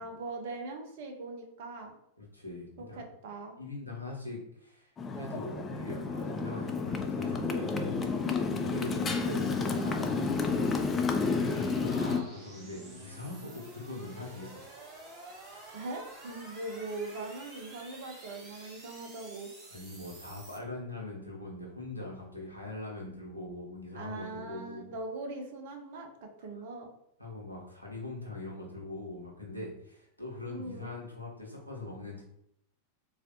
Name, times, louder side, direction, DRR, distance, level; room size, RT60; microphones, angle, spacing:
voice 1, 0.0-1.9 2.8-3.5 8.0-8.5 11.7-12.0 15.7-19.5 23.9-26.9 30.5-30.9, right 2 dB, 50° right, 3 dB, 0.5 m, -41 dB
voice 2, 2.2-3.0 3.6-7.8 8.6-10.8 11.3-14.6 15.3-15.7 19.7-24.9 27.2-32.2, left 2 dB, 90° left, -2 dB, 0.8 m, -42 dB
Motorcycle, 5.0-12.2, left 4 dB, 20° left, 0.3 m, -31 dB
sound 1, 8.4-20.6, right 2 dB, 30° right, 0.9 m, -51 dB
3.3 x 2.4 x 2.5 m, 0.74 s
figure-of-eight pair, 90°, 0 cm